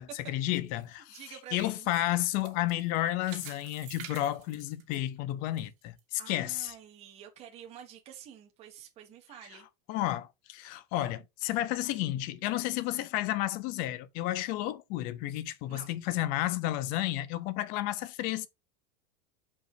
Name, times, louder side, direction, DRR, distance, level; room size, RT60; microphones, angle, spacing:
voice 1, 0.0-1.2 1.5-6.7 9.9-18.5, left 14 dB, 45° left, 0.7 m, -32 dB
sound 1, 0.6-5.6 6.0-6.1 6.7-6.8, right 10 dB, 55° right, 2.3 m, -49 dB
voice 2, 1.1-1.9 6.2-9.7 15.7-16.0, right 10 dB, 30° right, 1.4 m, -48 dB
5.4 x 4.8 x 4.9 m
supercardioid pair, 160°, 20 cm